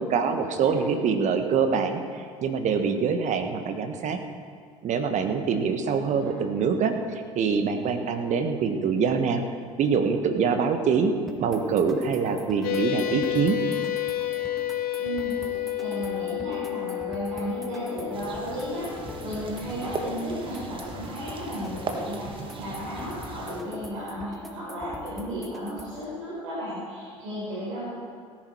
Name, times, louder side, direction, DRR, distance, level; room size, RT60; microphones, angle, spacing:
voice 1, 0.0-4.2 4.8-9.4 9.8-11.1 11.4-13.6, right 6 dB, 45° right, 7 dB, 1.4 m, -25 dB
voice 2, 6.1-6.4 15.0-27.9, equal, 70° right, -8 dB, 4.5 m, -34 dB
sound 1, 11.3-26.0, left 1 dB, ahead, 2.0 m, -43 dB
sound 2, 12.6-20.7, left 13 dB, 60° left, 1.5 m, -31 dB
sound 3, 18.1-23.6, right 3 dB, 30° right, 1.7 m, -38 dB
18.0 x 10.5 x 4.7 m, 2.1 s
hypercardioid pair, 65°, 17 cm